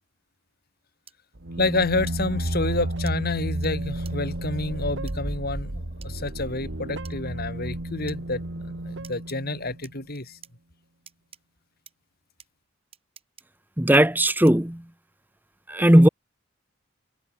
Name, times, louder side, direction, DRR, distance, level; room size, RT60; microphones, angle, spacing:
sound 1, 1.1-1.2 2.1-2.2 3.1-3.2 3.6-3.7 4.0-4.1 5.1-5.2 6.0-6.1 7.0-7.2 8.1-8.2 9.0-9.4 9.8-10.5 11.1-11.4 11.9-12.0 12.4-12.5 12.9-13.4 13.9-14.0 14.5-14.7, right 8 dB, 30° right, 3.8 m, -48 dB
sound 2, 1.4-9.9, right 1 dB, 60° right, 1.9 m, -32 dB
voice 1, 1.6-10.4, left 2 dB, 45° left, 3.8 m, -29 dB
voice 2, 13.8-14.8 15.7-16.1, right 1 dB, 10° right, 1.1 m, -17 dB
head